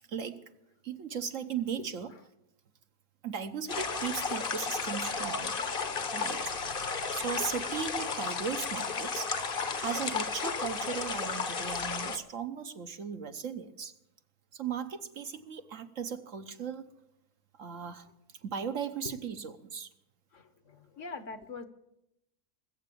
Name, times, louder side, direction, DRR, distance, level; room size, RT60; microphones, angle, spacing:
voice 1, 0.1-0.5 0.8-2.1 3.2-5.6 6.1-6.8 7.1-9.3 9.8-13.9 14.5-16.9 17.6-18.1 18.4-19.9, right 7 dB, 60° right, 8 dB, 1.3 m, -37 dB
sound 1, 3.7-12.2, left 5 dB, 40° left, 1.1 m, -33 dB
voice 2, 20.3-21.6, left 4 dB, 55° left, 10 dB, 1.4 m, -43 dB
20.5 x 8.0 x 8.4 m, 0.84 s
omnidirectional pair, 1.6 m